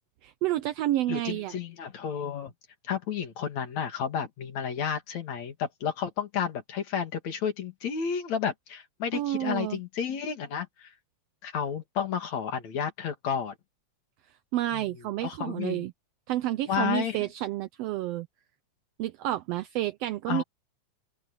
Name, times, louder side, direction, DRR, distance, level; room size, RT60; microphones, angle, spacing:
voice 1, 0.2-1.6 9.1-9.8 14.5-15.9 16.3-18.3 19.0-20.4, right 14 dB, 90° right, 1.4 m, -30 dB
voice 2, 1.1-2.5 2.9-10.9 11.4-13.5 14.7-14.9 15.2-15.9 16.7-17.2 20.3-20.4, left 8 dB, 65° left, 3.5 m, -31 dB
open air
omnidirectional pair, 3.4 m